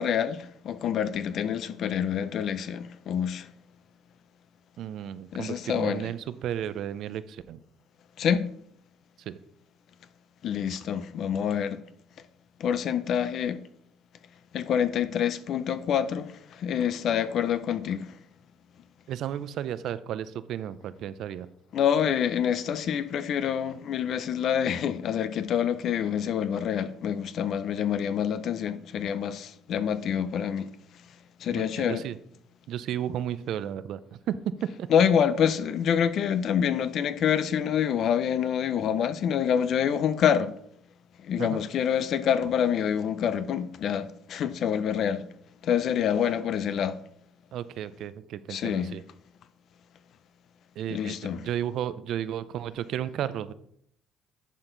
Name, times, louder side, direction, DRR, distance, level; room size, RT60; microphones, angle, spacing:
voice 1, 0.0-3.5 5.3-6.1 8.2-8.5 10.4-11.8 12.6-13.6 14.5-18.2 21.7-30.7 31.4-32.0 34.9-40.5 41.2-45.2 45.6-47.0 48.5-48.9 50.9-51.4, left 8 dB, 65° left, 0.5 m, -27 dB
voice 2, 4.8-7.6 9.3-9.4 19.1-21.5 31.5-32.2 32.7-34.9 41.4-41.6 47.5-49.0 50.8-53.5, right 10 dB, 70° right, 0.5 m, -33 dB
11.0 x 4.4 x 3.9 m
supercardioid pair, 75°, 0 cm